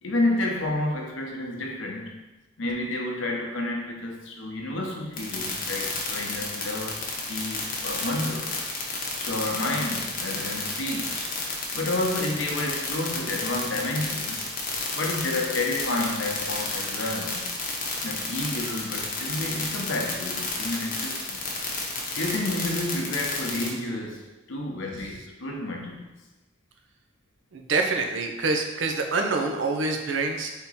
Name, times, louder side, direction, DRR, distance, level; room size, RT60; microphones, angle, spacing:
voice 1, 0.0-2.1 2.6-7.0 7.3-8.6 9.2-11.3 11.7-14.5 14.9-17.5 18.0-21.4 22.1-26.1, left 2 dB, 80° left, 0 dB, 0.7 m, -30 dB
sound 1, 5.2-23.7, left 4 dB, 45° left, 0.8 m, -31 dB
voice 2, 27.5-30.5, right 3 dB, 70° right, 3 dB, 0.5 m, -26 dB
3.5 x 2.8 x 4.1 m, 1.0 s
head